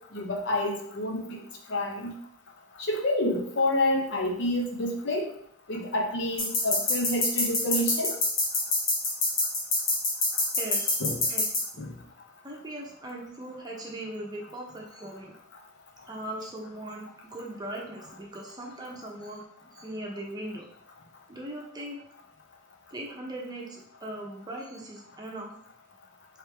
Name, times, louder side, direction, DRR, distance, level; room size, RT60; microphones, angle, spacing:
voice 1, 0.1-1.4 1.7-2.1 2.9-5.3 5.7-8.2 11.0-11.2 11.8-11.9, left 1 dB, 65° left, 1 dB, 0.8 m, -28 dB
sound 1, 6.4-11.6, left 3 dB, 90° left, 1.2 m, -25 dB
voice 2, 10.5-11.0 11.3-11.5 12.4-15.3 16.1-19.4 19.7-20.6 21.3-22.0 22.9-25.5, right 1 dB, 20° right, -1 dB, 0.7 m, -39 dB
3.2 x 3.2 x 3.4 m, 0.67 s
head